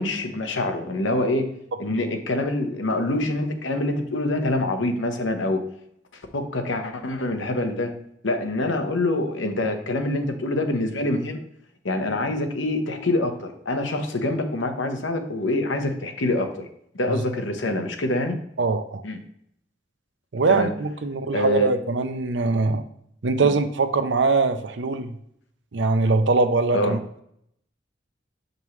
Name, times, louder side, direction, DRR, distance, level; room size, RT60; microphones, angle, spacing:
voice 1, 0.0-1.4 1.8-5.6 6.3-7.9 8.2-11.4 11.8-16.5 16.9-18.3 19.0-19.2 20.5-20.7 21.3-21.7 23.4-23.5 26.7-27.0, left 2 dB, 85° left, 6 dB, 0.9 m, -25 dB
voice 2, 18.6-19.0 20.3-22.8 23.2-25.1 25.7-27.0, right 3 dB, 70° right, 9 dB, 0.6 m, -22 dB
7.0 x 5.3 x 3.1 m, 0.72 s
head